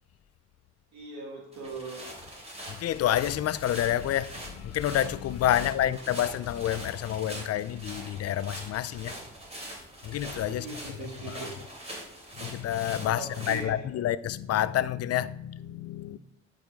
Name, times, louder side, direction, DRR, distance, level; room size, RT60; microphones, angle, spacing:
voice 1, 0.9-2.0 5.8-5.9 10.5-11.5 13.1-13.8, right 3 dB, 70° right, 2.1 m, -40 dB
sound 1, 1.5-13.6, right 1 dB, 20° right, 3.0 m, -43 dB
voice 2, 2.7-9.2 10.0-10.7 11.0-11.4 12.4-16.2, left 11 dB, 55° left, 0.4 m, -29 dB
10.5 x 4.9 x 3.6 m
cardioid pair, 90°, 30 cm